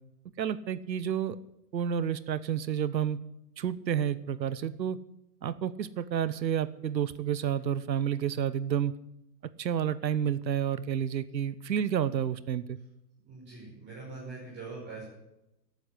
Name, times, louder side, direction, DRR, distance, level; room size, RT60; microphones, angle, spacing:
voice 1, 0.4-1.4 1.7-3.2 3.6-5.0 5.4-9.0 9.6-12.8, right 9 dB, 90° right, 17 dB, 1.1 m, -30 dB
voice 2, 13.3-15.0, right 3 dB, 20° right, -5 dB, 5.6 m, -43 dB
14.0 x 8.9 x 8.3 m, 0.88 s
hypercardioid pair, 145°, 50 cm